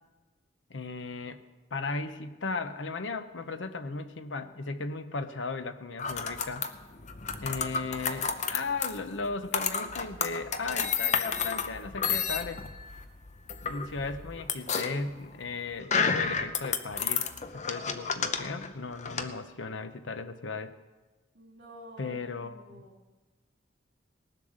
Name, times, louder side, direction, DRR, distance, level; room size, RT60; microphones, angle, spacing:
voice 1, 0.7-1.4 1.7-6.7 7.4-12.6 13.6-17.2 17.5-20.7 22.0-22.8, left 3 dB, 90° left, 9 dB, 0.8 m, -36 dB
sound 1, 6.0-19.3, left 6 dB, 40° left, 0.7 m, -31 dB
voice 2, 21.3-22.9, equal, 70° right, -6 dB, 3.1 m, -50 dB
19.0 x 7.6 x 6.5 m, 1.2 s
head